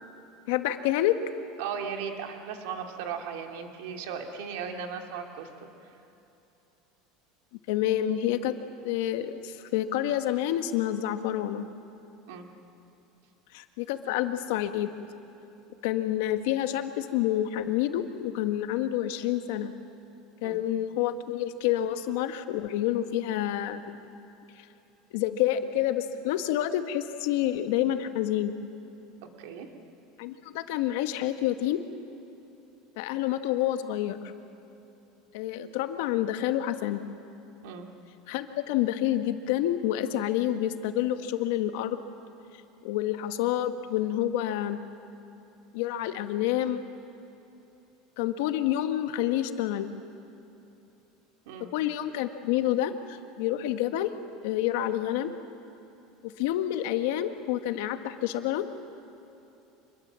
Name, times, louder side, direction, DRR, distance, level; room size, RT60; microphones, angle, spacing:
voice 1, 0.5-1.1 7.7-8.5 8.8-11.7 13.5-14.9 15.8-19.7 20.4-24.0 25.1-28.5 30.2-31.8 33.0-34.2 35.3-37.0 38.3-42.0 42.8-44.8 45.7-46.8 48.2-49.9 51.7-54.1 54.4-55.3 56.2-58.6, left 12 dB, 70° left, 8 dB, 1.4 m, -28 dB
voice 2, 1.6-5.7 12.3-12.5 20.4-20.6 29.4-29.7 37.6-37.9 51.5-51.7, right 6 dB, 75° right, 3 dB, 2.5 m, -37 dB
26.0 x 22.0 x 7.5 m, 2.8 s
supercardioid pair, 155°, 0 cm